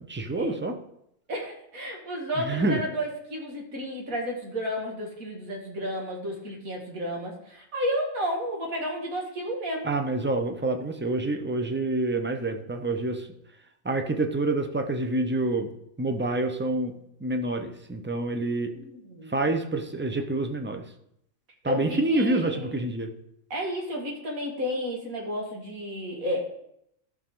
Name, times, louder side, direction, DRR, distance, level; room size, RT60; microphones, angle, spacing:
voice 1, 0.1-0.7 2.4-2.8 9.8-13.3 13.8-15.7 16.0-16.9 17.2-18.7 19.3-20.8 21.6-23.1, right 2 dB, 10° right, 5 dB, 0.5 m, -27 dB
voice 2, 1.3-9.9 18.8-19.4 21.7-22.7 23.5-26.4, equal, 90° right, 0 dB, 2.5 m, -32 dB
14.5 x 5.6 x 3.8 m, 0.76 s
omnidirectional pair, 1.4 m